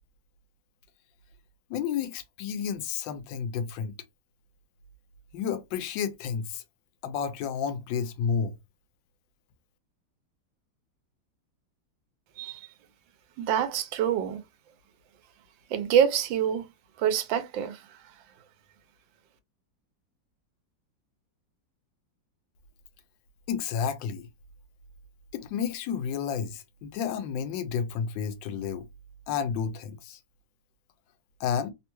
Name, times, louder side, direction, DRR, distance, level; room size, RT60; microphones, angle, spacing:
voice 1, 1.7-3.9 5.3-6.6 7.0-8.5 23.5-24.3 25.3-28.9 29.3-30.2 31.4-31.7, left 7 dB, 90° left, 1.3 m, -31 dB
voice 2, 12.4-12.7 13.4-14.4 15.7-16.7 17.0-18.1, right 9 dB, 85° right, 1.3 m, -26 dB
3.4 x 2.1 x 2.9 m
omnidirectional pair, 2.0 m